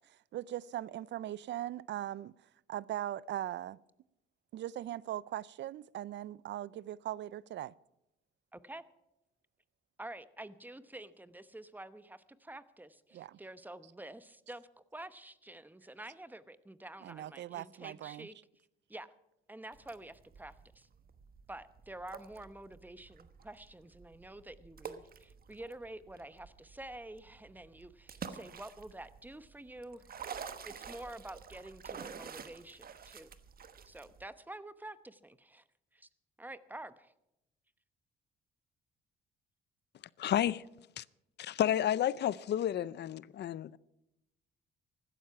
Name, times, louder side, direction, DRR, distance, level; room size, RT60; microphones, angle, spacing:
voice 1, 0.1-2.3 2.7-3.8 4.5-7.7 13.1-13.4 17.0-18.3, right 12 dB, 65° right, 0.4 m, -40 dB
voice 2, 8.5-8.8 10.0-18.4 18.9-19.1 19.5-20.9 21.5-30.0 30.3-33.3 33.8-35.6 35.9-36.1 36.4-37.1, right 1 dB, 10° right, 0.9 m, -48 dB
sound 1, 19.7-34.3, right 7 dB, 50° right, 1.2 m, -49 dB
voice 3, 40.2-40.6 41.0-41.1 41.4-43.8, left 11 dB, 60° left, 0.5 m, -31 dB
16.0 x 12.5 x 5.8 m
cardioid pair, 90°, 20 cm